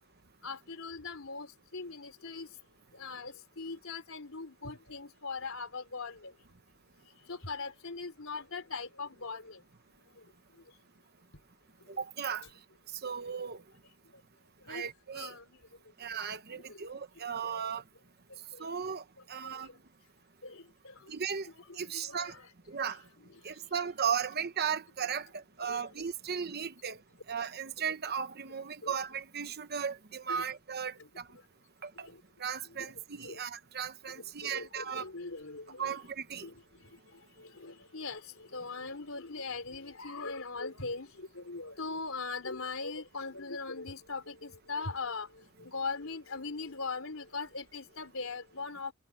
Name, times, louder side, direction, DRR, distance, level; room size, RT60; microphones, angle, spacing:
voice 1, 0.4-2.5 2.9-6.3 7.3-9.6 14.7-14.9 15.1-15.4 16.5-16.8 17.4-17.6 18.5-18.7 19.4-19.5 20.4-20.9 21.6-22.5 25.6-26.0 28.8-28.9 30.3-30.4 32.8-32.9 33.2-33.4 34.4-36.0 36.4-36.5 37.4-38.2 38.5-45.3 45.6-48.9, left 4 dB, 85° left, 3.5 m, -40 dB
voice 2, 11.9-12.5 12.9-13.6 14.7-15.3 16.0-17.8 18.6-19.7 21.1-21.5 21.8-22.4 22.7-23.0 23.4-27.0 27.3-31.3 31.8-32.1 32.4-35.1 35.8-36.5, right 7 dB, 50° right, 1.1 m, -36 dB
head